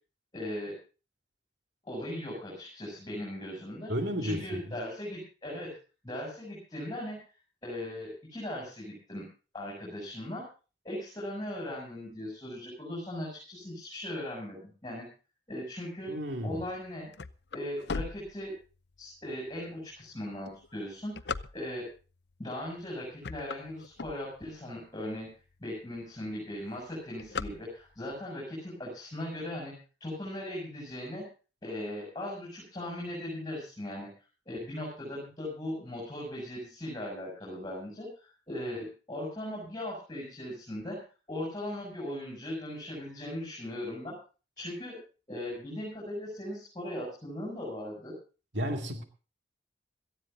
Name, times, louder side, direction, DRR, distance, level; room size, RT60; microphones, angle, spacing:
voice 1, 0.3-0.8 1.9-3.9 4.2-5.7 6.0-7.2 7.6-9.3 9.5-10.4 10.8-15.1 15.5-16.2 16.4-17.1 17.5-18.5 19.0-21.9 22.4-25.3 25.6-31.3 31.6-34.1 34.5-44.1 44.6-45.0 45.3-48.1, left 1 dB, 20° left, 6.9 m, -38 dB
voice 2, 3.9-4.8 16.1-16.7 48.5-49.0, equal, 75° right, 2.4 m, -33 dB
sound 1, 16.7-19.0 19.5-19.6 20.3-22.0 22.6-22.9 23.1-24.7 25.2-25.3 25.5-25.6 25.9-26.3 26.5-28.1, left 4 dB, 65° left, 0.6 m, -38 dB
17.5 x 14.0 x 3.8 m
head